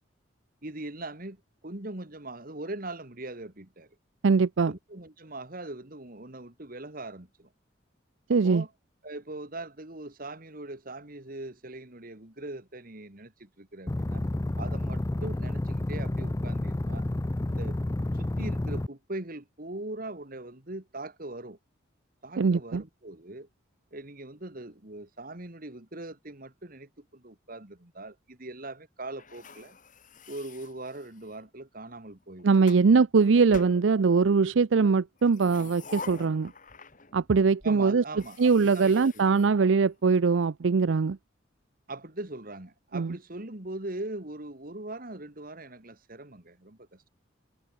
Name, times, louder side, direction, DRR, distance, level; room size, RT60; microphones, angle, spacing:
voice 1, 0.6-3.9 4.7-7.5 8.3-8.7 9.0-14.2 14.6-17.0 17.5-17.8 18.1-21.6 22.2-23.5 23.9-29.8 30.3-32.5 37.6-39.5 41.9-47.0, right 2 dB, 45° right, 2.3 m, -41 dB
voice 2, 4.2-4.7 8.3-8.6 22.4-22.8 32.4-36.5 37.1-38.0 38.4-41.2 42.9-43.1, right 4 dB, 75° right, 0.5 m, -22 dB
sound 1, 13.9-18.9, left 1 dB, 15° left, 0.4 m, -30 dB
sound 2, 29.2-31.5 32.2-32.9 33.5-34.4 35.2-37.3 37.6-37.7 38.1-40.2, left 4 dB, 45° left, 4.8 m, -47 dB
head